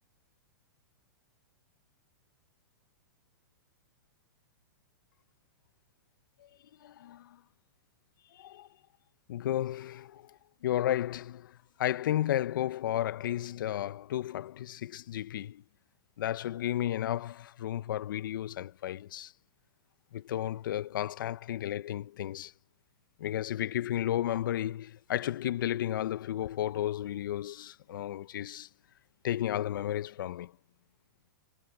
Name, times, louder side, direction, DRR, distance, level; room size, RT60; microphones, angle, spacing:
voice 1, 6.8-7.4 8.3-8.7 9.3-15.6 16.2-19.3 20.1-22.5 23.2-28.7 29.2-30.5, left 12 dB, 70° left, 0.7 m, -33 dB
hypercardioid pair, 125°, 11 cm